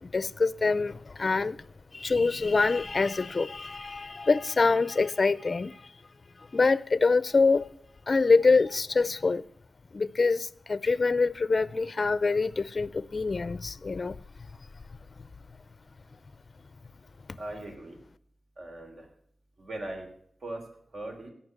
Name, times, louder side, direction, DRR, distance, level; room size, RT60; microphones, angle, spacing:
voice 1, 0.0-1.7 1.9-5.9 6.4-7.7 8.1-9.5 9.9-14.2, left 4 dB, 40° left, 0.6 m, -25 dB
voice 2, 17.4-18.0 18.6-19.1 19.6-20.1 20.4-21.3, right 1 dB, 55° right, 3.5 m, -39 dB
17.0 x 5.8 x 8.1 m
wide cardioid pair, 110°, 0 cm